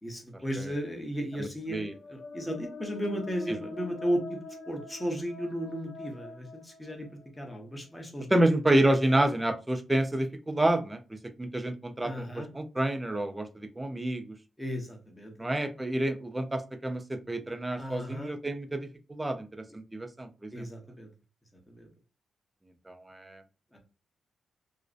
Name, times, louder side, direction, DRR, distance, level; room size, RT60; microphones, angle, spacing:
voice 1, 0.0-4.4 4.7-8.6 12.0-12.5 14.6-15.3 17.8-18.3 20.5-21.1 21.7-21.9 23.7-23.8, equal, 10° left, 2 dB, 0.7 m, -35 dB
voice 2, 1.4-1.9 8.3-14.4 15.4-20.7 22.9-23.4, right 1 dB, 15° right, 8 dB, 0.4 m, -29 dB
sound 1, 1.8-7.6, left 3 dB, 60° left, 0.6 m, -45 dB
2.5 x 2.0 x 2.4 m, 0.32 s
cardioid pair, 120°, 0 cm